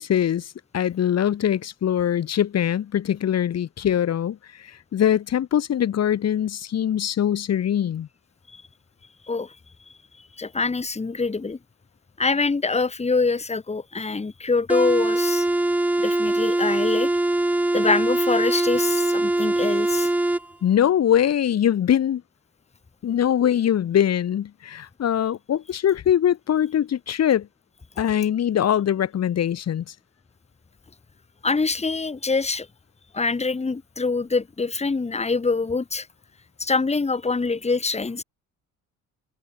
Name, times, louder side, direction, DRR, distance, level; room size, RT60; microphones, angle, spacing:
voice 1, 0.0-8.1 20.6-22.2 23.0-27.5 28.0-29.9, left 10 dB, 60° left, 1.9 m, -22 dB
voice 2, 10.4-11.6 12.2-15.5 16.0-17.1 17.7-20.1 31.4-32.7 33.1-36.1 36.6-38.2, left 4 dB, 20° left, 1.9 m, -24 dB
sound 1, 14.7-20.5, right 2 dB, 5° right, 0.3 m, -22 dB
cardioid pair, 90°, 30 cm